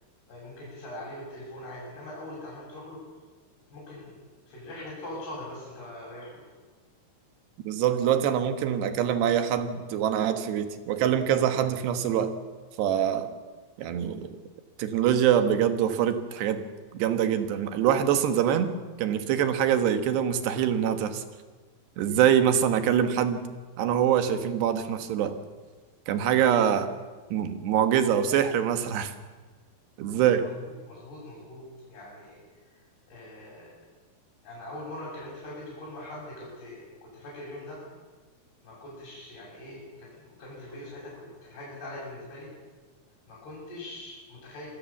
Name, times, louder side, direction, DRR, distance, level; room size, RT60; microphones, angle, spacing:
voice 1, 0.3-3.0 3.7-4.2 4.5-6.5 26.3-26.5 30.3-33.8 34.4-37.8 38.6-42.5 43.3-44.7, left 1 dB, 70° left, -6 dB, 9.1 m, -42 dB
voice 2, 7.7-12.3 12.8-13.3 13.8-14.4 14.8-16.6 16.9-18.7 19.0-21.2 22.0-23.4 23.8-25.4 26.1-26.9 27.3-29.1 30.0-30.5, right 9 dB, 85° right, 9 dB, 3.6 m, -24 dB
27.0 x 19.0 x 7.2 m, 1.4 s
omnidirectional pair, 4.7 m